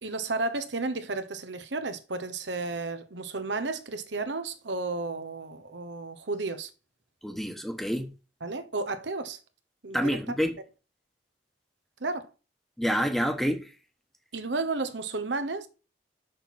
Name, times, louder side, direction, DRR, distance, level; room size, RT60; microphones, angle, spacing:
voice 1, 0.0-6.7 8.4-9.4 9.8-10.3 12.0-12.3 14.3-15.7, right 3 dB, 80° right, 1.1 m, -32 dB
voice 2, 7.2-8.1 9.9-10.5 12.8-13.7, equal, ahead, 1.2 m, -27 dB
6.7 x 5.8 x 6.0 m
head